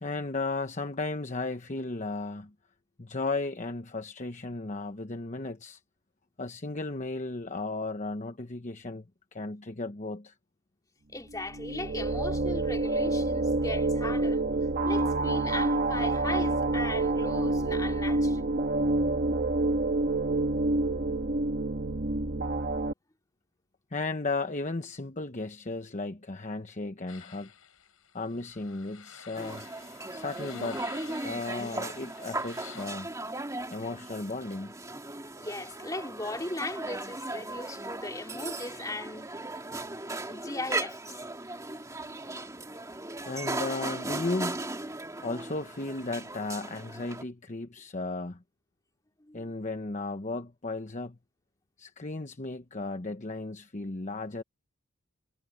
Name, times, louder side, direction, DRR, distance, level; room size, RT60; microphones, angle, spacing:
voice 1, 0.0-2.5 3.0-5.8 6.4-9.0 9.3-10.3 23.9-27.5 28.1-29.6 30.1-30.8 31.2-33.1 33.7-34.7 43.3-44.6 45.2-48.4 49.3-51.2 51.8-54.4, left 3 dB, 35° left, 1.0 m, -35 dB
voice 2, 11.1-14.4 14.8-18.5 35.4-39.3 40.2-41.2 49.2-49.5, left 2 dB, 15° left, 2.8 m, -38 dB
sound 1, 11.3-22.9, right 2 dB, 45° right, 1.4 m, -28 dB
sound 2, 27.1-32.9, left 7 dB, 90° left, 5.3 m, -50 dB
sound 3, 29.4-47.2, right 2 dB, 15° right, 2.3 m, -37 dB
head